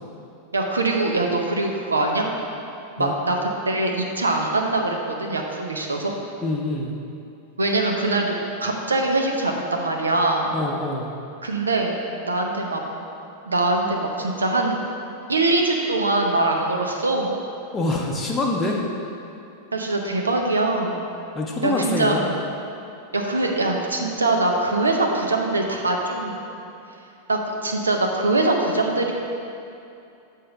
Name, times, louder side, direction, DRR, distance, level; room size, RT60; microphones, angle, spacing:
voice 1, 0.5-2.2 3.0-6.1 7.6-10.5 11.4-12.0 12.2-12.8 13.4-14.7 15.3-17.3 19.7-21.0 21.6-22.2 23.1-26.4 27.3-29.1, right 2 dB, 75° right, 2 dB, 0.7 m, -23 dB
voice 2, 6.4-6.9 10.5-11.1 17.7-18.8 21.3-22.2, left 2 dB, 15° left, -2 dB, 0.7 m, -25 dB
7.6 x 3.6 x 5.4 m, 2.6 s
figure-of-eight pair, 90°, 0 cm